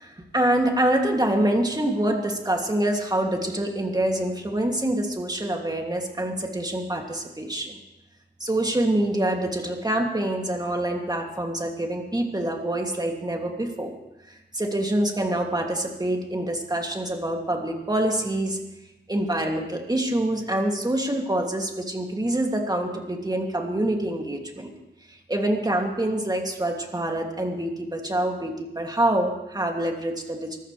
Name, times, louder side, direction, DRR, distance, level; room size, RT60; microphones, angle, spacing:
voice 1, 0.0-7.8 8.4-13.9 14.3-18.6 19.1-24.7 25.3-30.6, right 1 dB, 20° right, 1 dB, 2.7 m, -26 dB
24.5 x 14.0 x 3.4 m, 0.94 s
wide cardioid pair, 65°, 18 cm